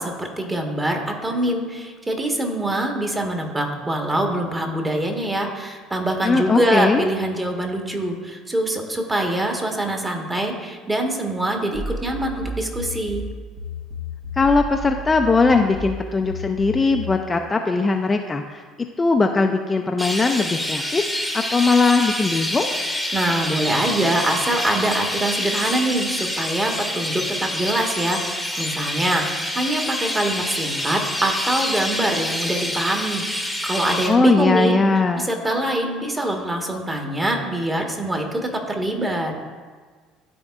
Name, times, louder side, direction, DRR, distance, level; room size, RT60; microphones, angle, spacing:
voice 1, 0.0-13.2 23.1-34.8 35.2-39.3, right 1 dB, 20° right, 2 dB, 1.3 m, -24 dB
voice 2, 6.2-7.1 14.4-18.6 19.0-22.7 34.1-35.3, left 3 dB, 25° left, 4 dB, 0.5 m, -19 dB
sound 1, 11.7-17.2, left 1 dB, 60° right, 1.2 m, -32 dB
Chirp tweet, 20.0-34.1, left 1 dB, ahead, 1.1 m, -27 dB
13.0 x 4.3 x 2.4 m, 1.5 s
hypercardioid pair, 60°, 0 cm